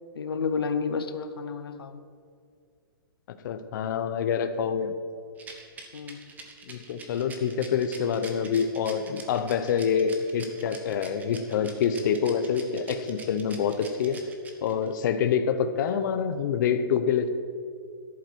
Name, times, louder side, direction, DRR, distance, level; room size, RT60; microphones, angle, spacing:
voice 1, 0.1-2.0 5.9-6.2, left 5 dB, 90° left, 10 dB, 0.9 m, -31 dB
voice 2, 3.3-4.9 6.7-14.2 14.6-17.3, left 7 dB, 55° left, 8 dB, 0.8 m, -26 dB
Rattle, 5.4-14.9, right 4 dB, 15° right, 1.3 m, -44 dB
13.0 x 11.0 x 4.5 m, 2.3 s
hypercardioid pair, 145°, 12 cm